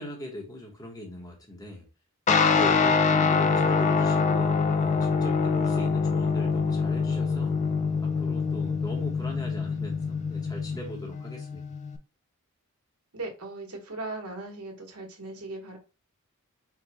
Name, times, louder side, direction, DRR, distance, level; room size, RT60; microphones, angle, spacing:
voice 1, 0.0-1.9 2.3-7.6 8.0-11.6, left 1 dB, 15° left, 1 dB, 0.9 m, -39 dB
Guitar, 2.3-12.0, left 5 dB, 30° left, 0.4 m, -25 dB
voice 2, 13.1-15.8, right 2 dB, 80° right, 2 dB, 1.4 m, -38 dB
4.7 x 2.3 x 4.0 m, 0.30 s
head